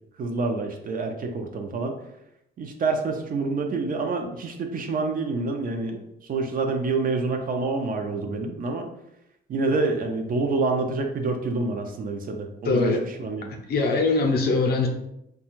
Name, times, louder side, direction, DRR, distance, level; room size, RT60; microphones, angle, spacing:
voice 1, 0.2-1.9 2.6-8.9 9.5-13.5, right 3 dB, 45° right, 4 dB, 0.4 m, -27 dB
voice 2, 12.6-13.0 13.7-14.9, left 3 dB, 55° left, 3 dB, 0.5 m, -22 dB
2.4 x 2.3 x 3.0 m, 0.82 s
cardioid pair, 90°, 20 cm